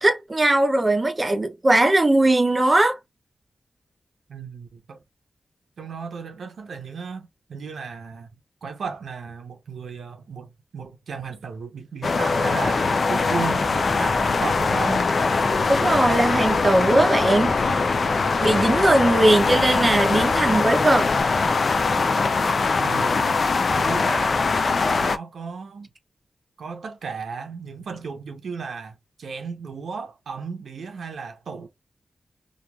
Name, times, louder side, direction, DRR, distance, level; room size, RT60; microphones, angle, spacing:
voice 1, 0.0-2.9 15.7-17.8 18.4-21.1, right 1 dB, 25° right, 0.5 m, -19 dB
voice 2, 4.3-5.0 5.8-8.3 8.6-15.1 22.8-23.4 23.7-24.4 24.7-25.9 26.6-31.7, right 5 dB, 85° right, 0.6 m, -35 dB
sound 1, 12.0-25.2, left 4 dB, 55° left, 0.3 m, -22 dB
sound 2, 13.4-21.2, equal, ahead, 1.2 m, -40 dB
2.9 x 2.3 x 2.2 m
wide cardioid pair, 115°, 0 cm